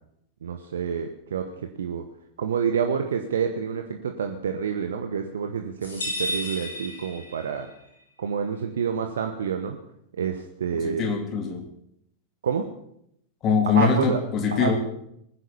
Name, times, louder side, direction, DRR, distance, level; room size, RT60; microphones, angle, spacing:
voice 1, 0.4-2.0 2.4-7.7 8.2-9.8 10.1-11.1 12.4-12.7 13.7-14.2 14.5-14.8, right 7 dB, 65° right, 6 dB, 1.2 m, -28 dB
sound 1, 5.8-7.8, left 1 dB, 75° left, 6.0 m, -32 dB
voice 2, 10.7-11.7 13.4-14.8, left 5 dB, 35° left, 5 dB, 3.3 m, -23 dB
20.5 x 10.0 x 7.0 m, 0.75 s
figure-of-eight pair, 90°, 0 cm